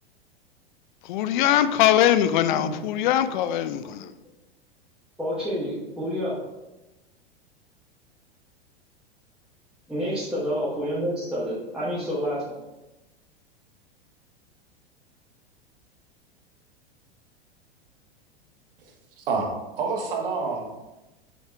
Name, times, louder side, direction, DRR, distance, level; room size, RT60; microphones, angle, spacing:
voice 1, 1.0-4.1, left 11 dB, 50° left, 0.6 m, -22 dB
voice 2, 5.2-6.3 9.9-12.4, equal, 5° right, 2.2 m, -28 dB
voice 3, 19.3-20.7, right 4 dB, 65° right, 1.4 m, -27 dB
7.2 x 5.7 x 3.3 m
figure-of-eight pair, 90°, 30 cm